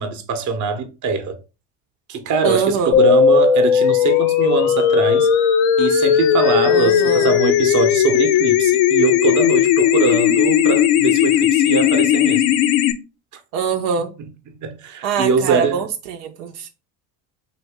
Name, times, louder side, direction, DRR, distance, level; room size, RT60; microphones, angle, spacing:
voice 1, 0.0-1.4 2.1-5.3 5.8-12.4 14.6-15.8, right 5 dB, 40° right, 0.8 m, -22 dB
voice 2, 2.4-3.0 6.7-7.3 13.5-14.1 15.0-16.7, right 6 dB, 80° right, 0.7 m, -23 dB
sound 1, 2.9-12.9, left 9 dB, 70° left, 0.6 m, -16 dB
3.1 x 2.6 x 3.4 m
hypercardioid pair, 80°, 48 cm